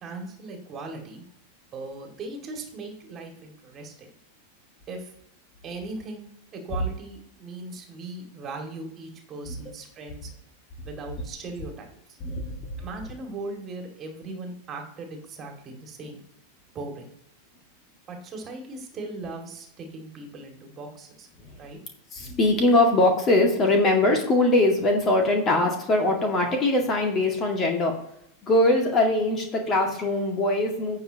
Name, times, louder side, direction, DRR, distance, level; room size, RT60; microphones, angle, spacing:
voice 1, 0.0-1.2 1.7-4.1 4.9-5.1 5.6-10.3 10.8-12.2 12.8-16.2 16.7-17.0 18.1-21.3 21.6-21.8, right 2 dB, 25° right, 2 dB, 2.3 m, -38 dB
voice 2, 12.2-12.6 22.1-27.9 28.4-31.0, left 2 dB, 25° left, 2 dB, 2.1 m, -22 dB
16.0 x 5.4 x 3.0 m, 0.78 s
figure-of-eight pair, 90°, 0 cm